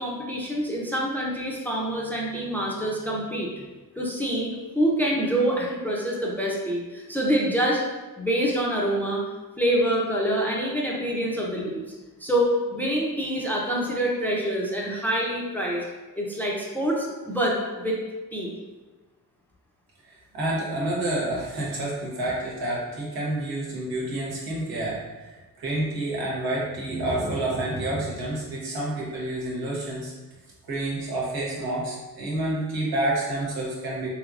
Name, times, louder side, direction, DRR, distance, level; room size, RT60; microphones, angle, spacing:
voice 1, 0.0-3.6 4.0-7.8 8.2-9.2 9.6-11.8 12.2-15.8 16.2-18.0 18.3-18.5, right 1 dB, 5° left, -3 dB, 0.6 m, -26 dB
voice 2, 20.1-30.1 30.7-34.1, right 1 dB, 80° right, -5 dB, 1.2 m, -29 dB
3.3 x 3.0 x 2.4 m, 1.2 s
cardioid pair, 85°, 37 cm